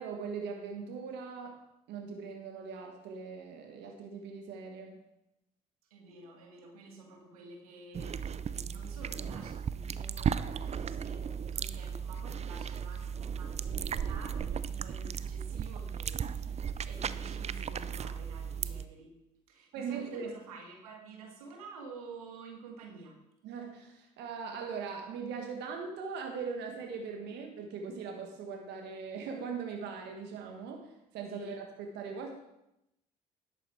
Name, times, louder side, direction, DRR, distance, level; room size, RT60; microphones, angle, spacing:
voice 1, 0.0-1.6 1.9-5.0 19.7-20.3 23.4-32.4, right 5 dB, 70° right, 3 dB, 1.4 m, -40 dB
voice 2, 5.9-19.1 19.5-23.2 31.3-31.5, right 3 dB, 90° right, 2 dB, 1.6 m, -50 dB
sound 1, 7.9-18.9, right 7 dB, 35° right, 0.5 m, -36 dB
11.0 x 8.1 x 4.4 m, 0.87 s
hypercardioid pair, 55°, 18 cm